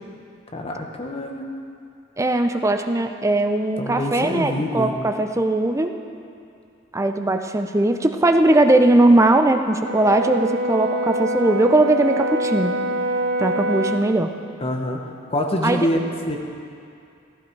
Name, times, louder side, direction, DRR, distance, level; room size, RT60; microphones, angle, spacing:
voice 1, 0.5-1.4 3.8-4.9 14.6-15.0 15.3-16.0 16.3-16.4, left 1 dB, 30° left, 2 dB, 1.2 m, -25 dB
voice 2, 2.2-5.9 6.9-12.7 13.4-14.3 15.6-15.9, right 2 dB, 15° right, 6 dB, 0.5 m, -19 dB
Brass instrument, 9.8-14.1, right 1 dB, 60° right, 0.6 m, -25 dB
15.0 x 14.5 x 4.6 m, 2.5 s
head